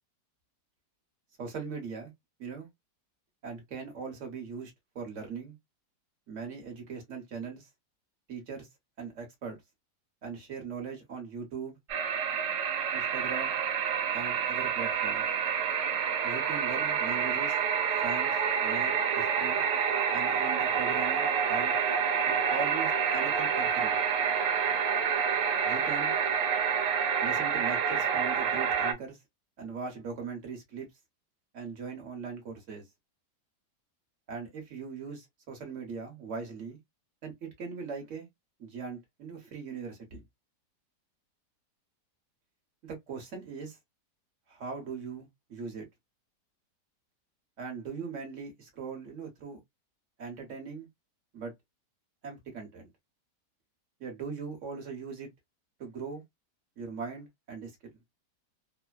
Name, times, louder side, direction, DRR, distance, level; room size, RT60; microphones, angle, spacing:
voice 1, 1.4-2.1 2.4-2.7 3.4-5.6 6.3-7.7 8.3-8.7 9.0-9.6 10.2-11.8 12.9-13.6 14.1-15.3 16.2-17.6 18.0-18.3 18.6-19.6 20.1-21.7 22.3-24.0 25.6-26.1 27.2-29.2 29.6-30.9 31.5-32.8 34.3-36.8 37.2-38.3 38.6-40.2 42.8-43.8 44.5-45.9 47.6-49.6 50.2-50.9 51.3-51.5 52.2-52.9 54.0-55.3 55.8-56.2 56.8-57.9, right 5 dB, 50° right, 1.3 m, -40 dB
sound 1, 11.9-28.9, right 7 dB, 90° right, 1.3 m, -28 dB
3.3 x 2.1 x 2.3 m
omnidirectional pair, 1.8 m